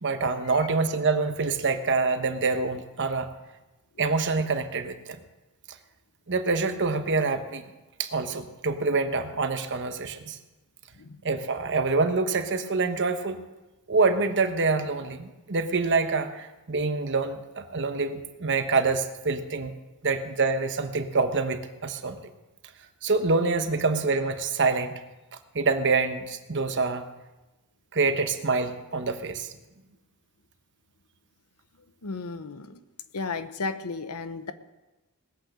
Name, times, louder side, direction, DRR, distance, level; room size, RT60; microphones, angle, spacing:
voice 1, 0.0-3.3 4.0-5.2 6.3-7.6 8.0-10.4 11.2-13.4 13.9-19.7 20.0-22.2 23.0-25.0 25.5-27.0 27.9-29.5, right 4 dB, 55° right, 8 dB, 1.1 m, -26 dB
voice 2, 32.0-32.8 33.1-34.5, left 4 dB, 85° left, 11 dB, 0.9 m, -34 dB
20.0 x 8.5 x 6.5 m, 1.1 s
head